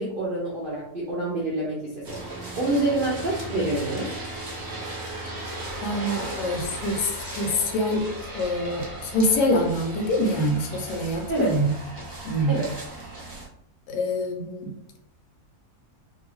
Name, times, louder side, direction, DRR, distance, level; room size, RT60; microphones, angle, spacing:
voice 1, 0.0-2.2 2.6-4.1 11.3-11.6 12.5-12.7, right 2 dB, 65° right, -4 dB, 0.5 m, -27 dB
sound 1, 2.0-13.5, right 1 dB, 35° right, 0.8 m, -36 dB
voice 2, 5.8-11.7 12.2-12.6 13.9-14.7, left 1 dB, 85° left, 2 dB, 1.2 m, -25 dB
2.6 x 2.6 x 3.0 m, 0.72 s
omnidirectional pair, 1.7 m